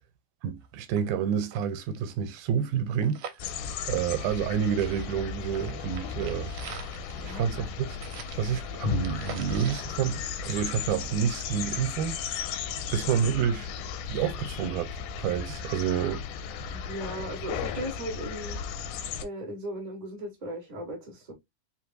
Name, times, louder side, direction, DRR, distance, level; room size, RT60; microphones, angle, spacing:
voice 1, 0.4-3.2 3.9-6.5 7.2-7.9 8.4-12.2 12.9-13.7 14.1-14.9 15.2-16.3, right 8 dB, 90° right, 2.1 m, -29 dB
sound 1, 0.6-0.7 1.0-1.1 1.4-4.5 4.8-10.9 11.3-11.4, right 8 dB, 70° right, 1.8 m, -45 dB
sound 2, 3.4-19.2, left 7 dB, 85° left, 2.1 m, -35 dB
voice 2, 16.7-18.6 19.2-21.3, right 1 dB, 25° right, 0.9 m, -37 dB
4.9 x 3.1 x 2.6 m
omnidirectional pair, 3.6 m